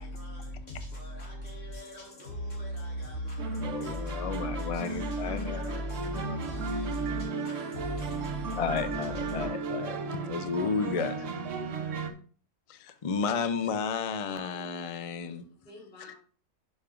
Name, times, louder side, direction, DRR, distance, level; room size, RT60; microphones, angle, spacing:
voice 1, 0.0-9.5, equal, 80° left, 3.3 m, -38 dB
sound 1, 3.4-12.1, right 4 dB, 65° right, 1.2 m, -35 dB
voice 2, 3.6-5.8 6.1-6.4 8.6-10.0 10.2-11.3 12.7-15.5 16.0-16.1, left 5 dB, 65° left, 0.3 m, -32 dB
voice 3, 14.2-16.2, left 2 dB, 40° left, 2.4 m, -53 dB
11.5 x 5.3 x 2.5 m
omnidirectional pair, 1.4 m